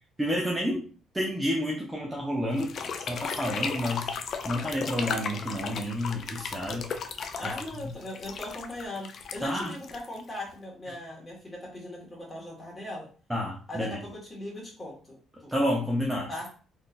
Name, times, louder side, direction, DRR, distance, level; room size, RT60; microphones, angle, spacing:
voice 1, 0.2-0.9 1.1-4.1 4.4-6.9 9.4-9.7 13.3-14.0 15.5-16.3, equal, 10° right, -2 dB, 0.6 m, -30 dB
sound 1, 2.5-10.5, left 5 dB, 50° left, 0.4 m, -35 dB
voice 2, 7.4-13.1 13.7-15.5 16.3-16.5, left 1 dB, 20° left, -4 dB, 1.6 m, -39 dB
3.6 x 2.7 x 2.5 m, 0.38 s
cardioid pair, 120°, 0 cm